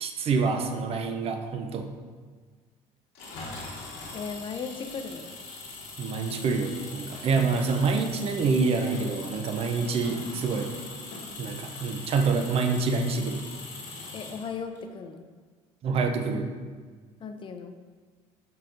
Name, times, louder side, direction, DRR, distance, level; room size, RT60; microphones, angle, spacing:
voice 1, 0.0-1.9 6.0-10.7 11.4-13.4 15.8-16.5, right 4 dB, 45° right, 5 dB, 0.5 m, -26 dB
Engine, 3.1-14.8, left 3 dB, 90° left, 1.0 m, -41 dB
voice 2, 4.1-5.3 14.1-15.3 17.2-17.7, left 5 dB, 40° left, 7 dB, 0.4 m, -36 dB
5.7 x 3.7 x 2.5 m, 1.5 s
supercardioid pair, 85°, 14 cm